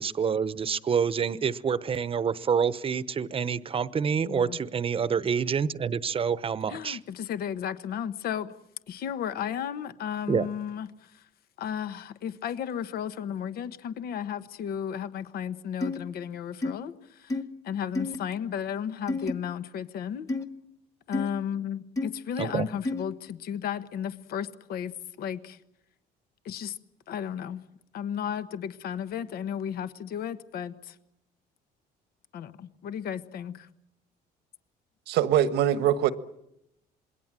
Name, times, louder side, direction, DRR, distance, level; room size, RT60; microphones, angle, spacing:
voice 1, 0.0-7.0 10.3-10.5 22.4-22.7, right 6 dB, 35° right, 1.0 m, -27 dB
voice 2, 4.2-4.6 6.7-8.5 8.9-11.2 11.6-17.4 17.6-20.3 21.1-24.9 25.2-25.6 26.4-26.8 27.1-27.6 27.9-31.0 32.3-33.7, left 8 dB, 65° left, 1.3 m, -34 dB
sound 1, 15.8-16.0 16.6-16.7 17.3-17.4 17.9-18.2 19.1-19.3 20.3-20.4 21.1-21.3 22.0-22.1 22.8-23.0, left 2 dB, 20° left, 1.7 m, -29 dB
voice 3, 35.1-36.1, right 10 dB, 85° right, 1.4 m, -23 dB
27.0 x 21.5 x 7.6 m
cardioid pair, 110°, 17 cm